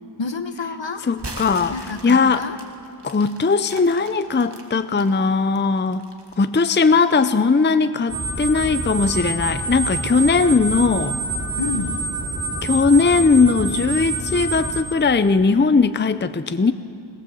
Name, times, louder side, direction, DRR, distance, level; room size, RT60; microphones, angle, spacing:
voice 1, 0.2-1.0 1.7-2.6 11.6-12.0, left 4 dB, 65° left, 9 dB, 1.2 m, -28 dB
voice 2, 1.1-1.7 2.0-2.4 3.0-6.0 6.4-11.2 12.6-16.7, left 4 dB, 25° left, 12 dB, 0.5 m, -18 dB
sound 1, 1.1-5.1 5.6-6.8, right 2 dB, 60° right, 2.0 m, -39 dB
sound 2, 8.1-14.8, right 3 dB, 35° right, 3.1 m, -27 dB
20.5 x 19.0 x 7.6 m, 2.5 s
wide cardioid pair, 50°, 47 cm